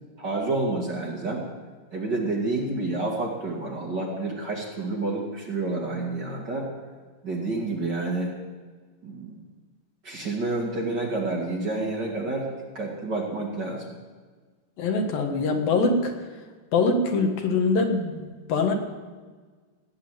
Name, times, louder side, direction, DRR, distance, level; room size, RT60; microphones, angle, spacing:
voice 1, 0.2-1.4 1.9-6.7 7.2-8.3 9.0-9.4 10.0-12.5 12.7-14.0, right 2 dB, 35° right, -2 dB, 2.3 m, -29 dB
voice 2, 14.8-16.1 16.7-18.7, left 3 dB, 85° left, 3 dB, 3.5 m, -23 dB
17.5 x 9.6 x 7.9 m, 1.4 s
omnidirectional pair, 4.0 m